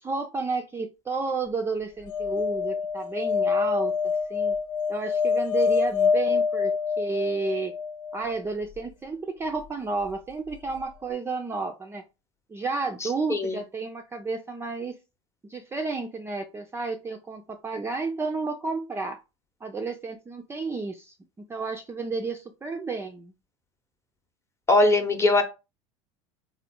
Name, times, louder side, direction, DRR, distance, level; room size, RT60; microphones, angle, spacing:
voice 1, 0.0-4.6 4.9-7.7 8.1-12.0 12.5-14.9 15.4-19.2 19.6-23.3, right 4 dB, 15° right, 0.4 m, -32 dB
sound 1, 2.1-8.2 10.5-10.6 10.8-10.9, left 5 dB, 55° left, 0.9 m, -26 dB
voice 2, 13.0-13.6 24.7-25.4, left 2 dB, 15° left, 0.8 m, -21 dB
3.7 x 2.1 x 3.6 m
hypercardioid pair, 85°, 16 cm